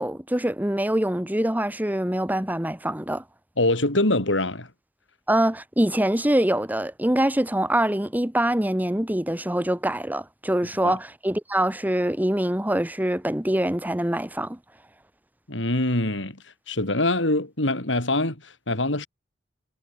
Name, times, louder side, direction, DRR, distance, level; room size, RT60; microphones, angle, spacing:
voice 1, 0.0-3.2 5.3-14.6, right 1 dB, 10° right, 1.6 m, -24 dB
voice 2, 3.6-4.7 10.8-11.0 15.5-19.1, left 2 dB, 90° left, 5.2 m, -24 dB
head